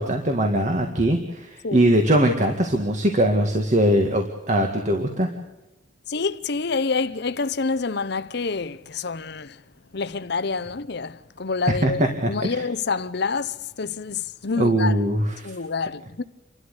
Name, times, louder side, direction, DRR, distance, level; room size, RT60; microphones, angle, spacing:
voice 1, 0.0-5.3 11.7-12.6 14.6-15.5, right 1 dB, 40° right, 1.9 m, -21 dB
voice 2, 6.1-9.6 9.9-12.0 12.3-15.0 15.4-16.2, left 4 dB, 60° left, 0.8 m, -27 dB
29.0 x 13.0 x 8.3 m
head